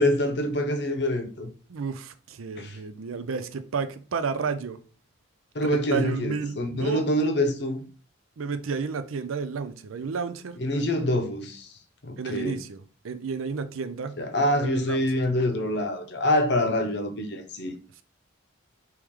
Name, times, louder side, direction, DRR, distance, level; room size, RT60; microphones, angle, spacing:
voice 1, 0.0-1.5 2.6-2.8 5.5-7.8 10.6-11.7 12.0-12.6 14.2-17.7, left 1 dB, 55° left, 0.8 m, -25 dB
voice 2, 1.7-4.8 5.6-7.0 8.4-10.9 12.2-14.2 14.5-15.0, right 5 dB, 85° right, 0.5 m, -32 dB
4.7 x 3.1 x 3.6 m
head